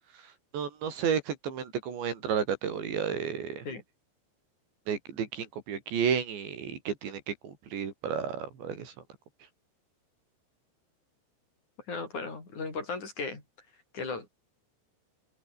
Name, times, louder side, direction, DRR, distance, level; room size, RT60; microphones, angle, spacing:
voice 1, 0.5-3.7 4.9-8.9, right 7 dB, 80° right, 6.5 m, -32 dB
voice 2, 11.9-13.4 13.9-14.3, left 4 dB, 40° left, 8.0 m, -36 dB
omnidirectional pair, 5.1 m